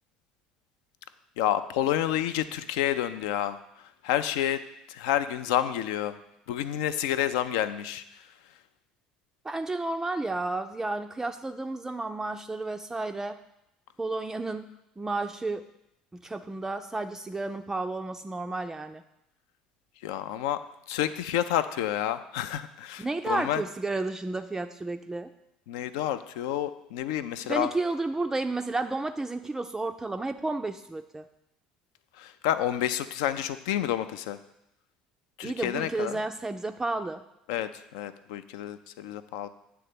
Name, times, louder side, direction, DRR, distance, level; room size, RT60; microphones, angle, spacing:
voice 1, 1.4-3.6 4.0-4.6 4.9-6.2 6.5-8.0 20.0-20.6 20.9-23.6 25.7-27.7 32.2-34.4 35.4-36.2 37.5-39.5, left 11 dB, 65° left, 12 dB, 0.4 m, -29 dB
voice 2, 9.4-13.4 14.0-14.7 15.0-15.6 16.1-19.0 23.0-25.3 27.4-31.2 35.4-37.2, right 2 dB, 15° right, 7 dB, 0.4 m, -32 dB
8.5 x 3.4 x 6.7 m, 0.84 s
figure-of-eight pair, 60°, 4 cm